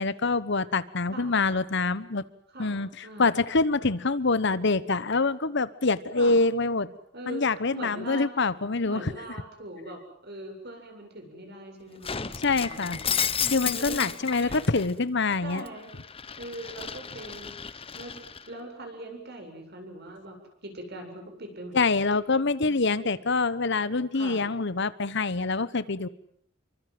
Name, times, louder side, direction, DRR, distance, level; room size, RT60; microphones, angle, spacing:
voice 1, 0.0-2.2 2.6-6.9 7.3-9.1 12.4-13.0 13.5-15.6 21.7-26.1, left 3 dB, 60° left, 16 dB, 1.1 m, -25 dB
voice 2, 7.1-8.3 8.8-13.2 13.7-14.6 15.4-15.9 16.4-18.2 18.5-20.4 20.6-22.0 22.6-22.7 24.1-24.4, right 1 dB, 55° right, 4 dB, 7.9 m, -41 dB
Shatter, 12.0-14.9 15.3-18.5, left 7 dB, 30° left, 1.1 m, -32 dB
28.5 x 24.0 x 7.8 m, 0.65 s
head